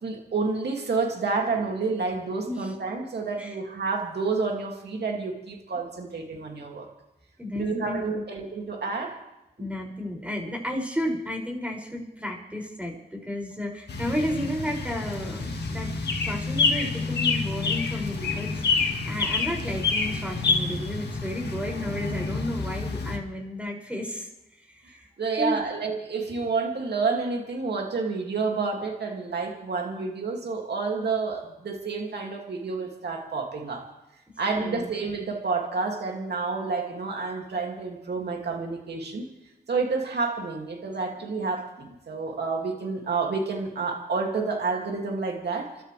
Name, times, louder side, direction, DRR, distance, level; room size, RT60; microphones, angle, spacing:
voice 1, 0.0-6.9 7.5-9.2 24.9-33.9 34.4-39.3 39.7-45.8, right 4 dB, 85° right, 1 dB, 2.5 m, -29 dB
voice 2, 7.4-8.2 9.6-15.9 16.2-24.3 24.6-25.0 25.4-25.6 34.6-34.9, left 1 dB, 10° right, 0 dB, 6.2 m, -32 dB
sound 1, 13.9-23.2, left 4 dB, 85° left, 1.8 m, -28 dB
29.0 x 13.0 x 3.4 m, 0.92 s
cardioid pair, 50°, 17 cm